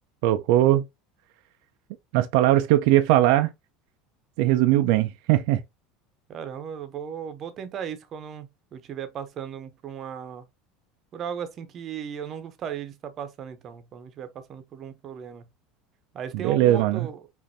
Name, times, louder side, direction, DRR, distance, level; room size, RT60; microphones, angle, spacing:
voice 1, 0.2-0.8 2.1-3.5 4.4-5.6 16.3-17.1, right 14 dB, 65° right, 0.4 m, -20 dB
voice 2, 6.3-10.4 11.1-15.5 16.1-17.2, right 8 dB, 35° right, 0.7 m, -36 dB
5.2 x 2.5 x 2.7 m
cardioid pair, 150°, 0 cm